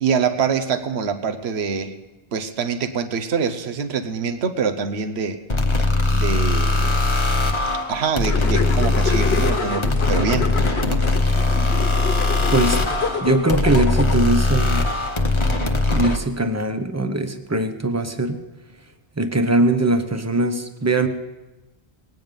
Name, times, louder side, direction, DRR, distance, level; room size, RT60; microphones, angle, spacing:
voice 1, 0.0-2.0 2.3-5.4 6.1-7.0 7.9-10.5 10.8-11.0, right 6 dB, 80° right, 8 dB, 1.2 m, -24 dB
sound 1, 5.5-16.2, left 2 dB, 30° left, 1.0 m, -20 dB
sound 2, 8.2-14.5, left 6 dB, 75° left, 1.1 m, -28 dB
voice 2, 12.5-12.8 13.2-14.9 15.9-18.4 19.2-21.1, right 2 dB, 15° right, 8 dB, 0.8 m, -21 dB
20.5 x 9.3 x 5.2 m, 1.1 s
omnidirectional pair, 1.1 m